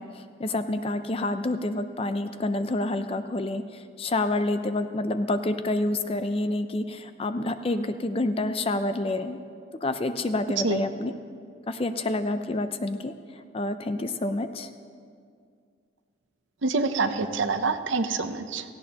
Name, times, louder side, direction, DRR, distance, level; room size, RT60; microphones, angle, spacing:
voice 1, 0.0-9.4 9.8-11.1 11.7-14.7, left 2 dB, 30° left, 9 dB, 0.4 m, -28 dB
voice 2, 16.6-18.6, right 4 dB, 65° right, 10 dB, 0.6 m, -26 dB
17.5 x 15.5 x 2.9 m, 2.2 s
head